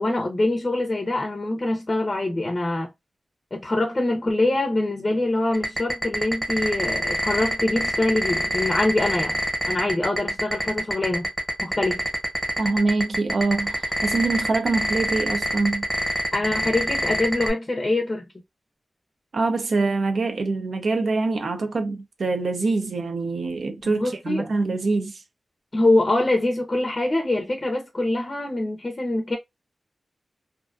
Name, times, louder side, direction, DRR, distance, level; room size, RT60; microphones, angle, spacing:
voice 1, 0.0-2.9 3.5-9.4 9.7-11.3 11.6-12.0 16.3-18.3 23.8-24.5 25.7-29.4, left 2 dB, 30° left, 0.5 m, -24 dB
sound 1, 5.5-17.5, equal, 15° right, 1.0 m, -25 dB
voice 2, 12.6-15.9 19.3-25.2, right 3 dB, 75° right, 0.5 m, -24 dB
2.5 x 2.2 x 2.3 m
wide cardioid pair, 130°, 0 cm